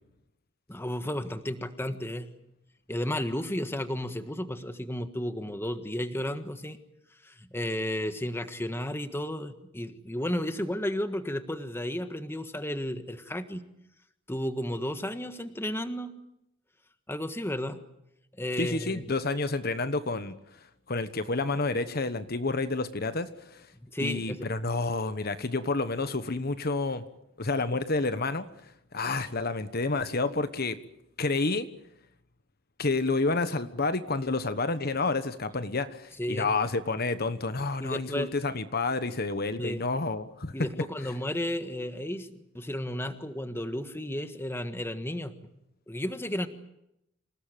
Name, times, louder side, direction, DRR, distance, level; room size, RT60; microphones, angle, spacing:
voice 1, 0.7-2.3 2.9-6.8 7.2-13.6 14.3-16.1 17.1-17.8 18.4-19.1 23.8-24.5 36.2-36.5 37.8-38.3 39.6-39.8 40.5-45.4 45.9-46.5, left 1 dB, 10° left, 9 dB, 1.5 m, -33 dB
voice 2, 18.6-20.3 20.9-23.7 24.0-27.0 27.4-28.5 28.9-30.8 31.2-31.7 32.8-40.5, left 3 dB, 50° left, 11 dB, 1.3 m, -29 dB
27.5 x 18.5 x 9.2 m, 0.82 s
head